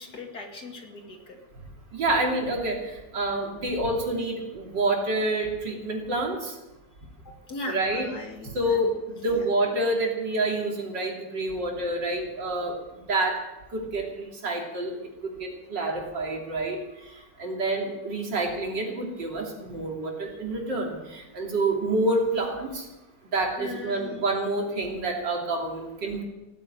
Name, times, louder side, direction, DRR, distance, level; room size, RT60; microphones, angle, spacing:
voice 1, 0.0-1.4 7.2-9.8 23.6-24.3, left 2 dB, 60° left, 3 dB, 2.6 m, -40 dB
voice 2, 1.9-2.8 3.1-6.5 7.7-8.1 8.6-8.9 9.2-12.8 13.1-13.4 13.7-14.9 15.4-16.8 17.4-22.8 23.3-26.2, right 2 dB, 75° right, 0 dB, 3.5 m, -27 dB
17.0 x 9.2 x 9.0 m, 1.0 s
omnidirectional pair, 1.9 m